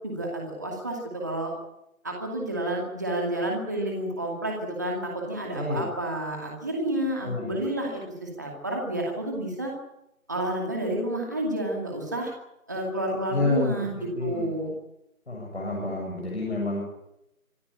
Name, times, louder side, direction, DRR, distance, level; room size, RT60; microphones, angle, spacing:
voice 1, 0.0-1.5 2.0-9.7 10.3-12.3 12.7-13.9 14.2-14.7, right 1 dB, 15° right, -1 dB, 2.4 m, -30 dB
voice 2, 7.2-7.6 13.3-14.5 15.3-16.8, left 3 dB, 50° left, -2 dB, 7.3 m, -29 dB
26.0 x 14.0 x 9.9 m, 0.86 s
figure-of-eight pair, 180°, 43 cm